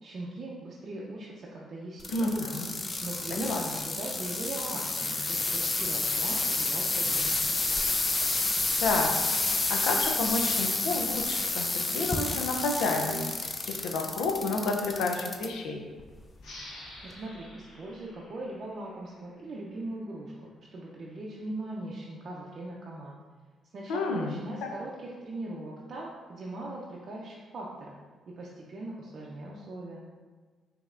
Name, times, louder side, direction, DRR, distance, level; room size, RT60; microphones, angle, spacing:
voice 1, 0.0-2.6 3.0-7.6 17.0-23.2 23.7-27.9 28.4-30.1, right 2 dB, 50° right, -4 dB, 0.5 m, -40 dB
sound 1, 2.0-15.5 16.0-16.4 17.1-17.2, left 3 dB, 30° left, 0.4 m, -30 dB
voice 2, 2.1-2.7 3.3-3.6 8.8-9.1 9.7-15.8 23.9-24.3 24.6-24.7, left 3 dB, 90° left, 3 dB, 0.5 m, -30 dB
sound 2, 16.4-19.7, left 1 dB, 70° left, 1.2 m, -49 dB
5.2 x 2.8 x 2.4 m, 1.4 s
cardioid pair, 90°, 0 cm